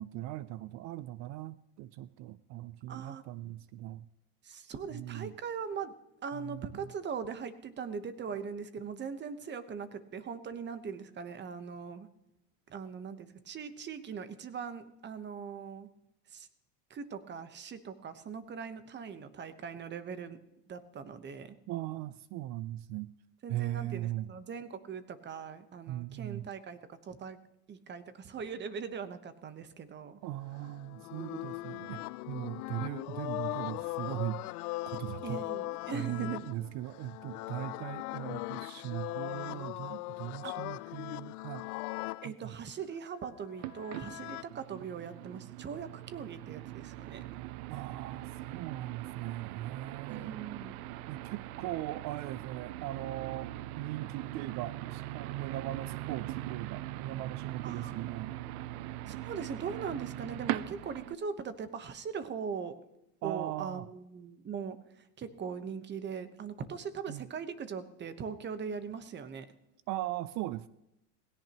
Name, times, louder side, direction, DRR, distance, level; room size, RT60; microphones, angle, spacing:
voice 1, 0.0-4.1 4.9-5.3 6.3-6.7 21.7-23.1 23.5-24.3 25.9-26.4 30.2-34.5 34.9-35.4 35.9-41.7 42.2-42.6 47.7-50.4 51.1-58.3 63.2-63.9 67.1-67.3 69.9-70.7, right 15 dB, 45° right, 17 dB, 0.4 m, -39 dB
voice 2, 2.9-3.2 4.4-5.9 6.2-12.1 12.7-15.9 16.3-16.5 16.9-20.4 20.7-21.6 23.4-26.8 27.0-27.4 27.7-30.2 35.2-36.4 40.4-40.5 42.2-47.2 50.1-50.8 57.6-58.1 59.1-62.8 63.2-69.5, right 6 dB, 25° right, 12 dB, 1.0 m, -40 dB
sound 1, 30.5-42.3 43.4-44.4, left 20 dB, 90° left, 0.6 m, -39 dB
sound 2, 43.6-61.1, right 15 dB, 85° right, 0.7 m, -41 dB
18.0 x 16.5 x 3.0 m, 0.91 s
supercardioid pair, 135°, 43 cm